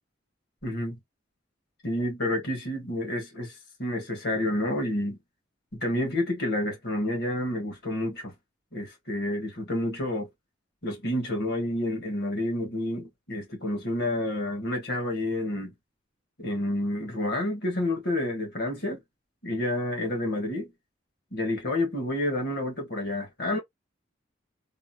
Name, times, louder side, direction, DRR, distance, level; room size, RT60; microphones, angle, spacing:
voice 1, 0.6-1.0 1.8-3.5 3.8-5.2 5.8-8.3 8.7-10.3 10.8-15.7 16.4-19.0 19.4-20.7 21.3-23.6, left 1 dB, 55° left, 1.4 m, -29 dB
3.5 x 2.2 x 2.6 m
head